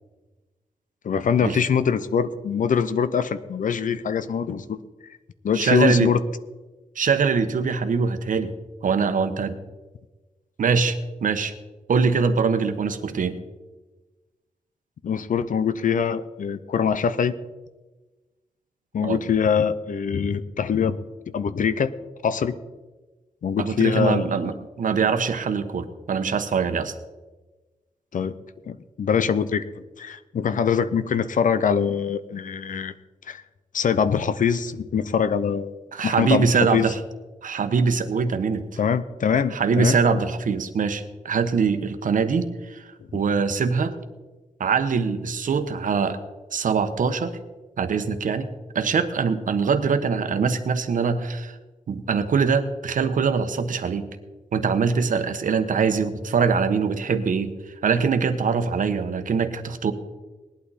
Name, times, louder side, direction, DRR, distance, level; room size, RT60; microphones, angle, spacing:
voice 1, 1.0-4.8 5.4-6.2 15.0-17.3 18.9-21.0 21.3-21.9 22.2-22.5 23.4-24.5 28.1-28.4 28.7-32.9 33.3-33.4 33.7-35.8 36.0-36.9 38.8-40.2 43.1-43.2, left 7 dB, 75° left, 14 dB, 0.7 m, -23 dB
voice 2, 5.5-6.1 6.9-8.5 8.8-9.6 10.6-11.5 11.9-13.4 19.0-19.2 23.6-26.9 35.9-37.0 37.4-38.6 39.5-43.9 44.6-46.2 46.5-47.4 47.8-48.5 48.7-51.5 51.9-54.1 54.5-57.5 57.8-59.9, right 5 dB, 75° right, 9 dB, 1.1 m, -23 dB
19.0 x 11.5 x 4.2 m, 1.2 s
wide cardioid pair, 175°, 14 cm